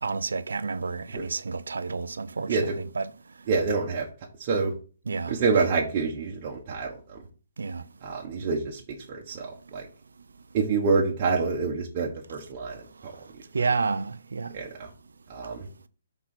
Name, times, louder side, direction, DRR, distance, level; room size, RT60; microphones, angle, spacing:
voice 1, 0.0-2.5 2.9-3.0 5.1-5.4 7.6-7.8 13.5-14.5, right 4 dB, 85° right, 0.6 m, -29 dB
voice 2, 3.5-4.1 4.4-4.7 5.3-7.2 8.0-8.8 9.1-9.9 10.5-13.1 14.5-14.9 15.3-15.7, right 4 dB, 35° right, 1.3 m, -27 dB
6.0 x 4.1 x 5.9 m
hypercardioid pair, 155°, 0 cm